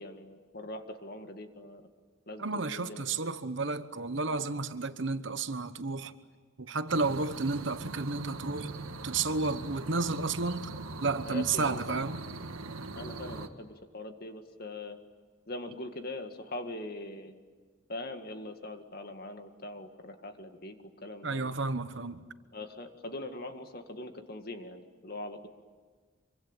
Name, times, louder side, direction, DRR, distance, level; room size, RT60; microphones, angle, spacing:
voice 1, 0.0-1.9 2.3-3.1 11.2-12.0 13.0-15.0 15.5-17.4 17.9-20.8 21.0-21.5 22.5-25.5, left 1 dB, 45° left, 2.0 m, -42 dB
voice 2, 2.4-6.1 6.6-8.7 9.0-10.7 11.0-12.2 21.2-22.2, right 3 dB, 55° right, 1.1 m, -32 dB
sound 1, 6.9-13.5, right 3 dB, 85° right, 1.7 m, -41 dB
26.5 x 24.5 x 9.0 m
head